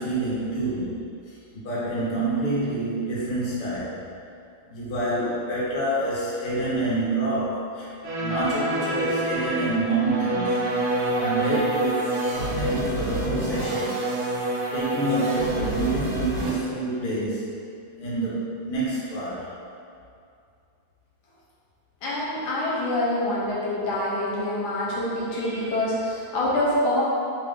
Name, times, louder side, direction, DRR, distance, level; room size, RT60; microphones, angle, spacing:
voice 1, 0.0-4.0 4.7-7.9 8.2-10.6 11.1-14.1 14.7-17.5 18.0-19.5 25.3-25.8, right 2 dB, 55° left, -8 dB, 1.1 m, -27 dB
sound 1, 8.0-16.5, right 2 dB, 65° right, 1.0 m, -27 dB
voice 2, 22.0-27.0, left 1 dB, 80° left, -6 dB, 1.4 m, -26 dB
3.4 x 2.4 x 3.5 m, 2.5 s
omnidirectional pair, 2.3 m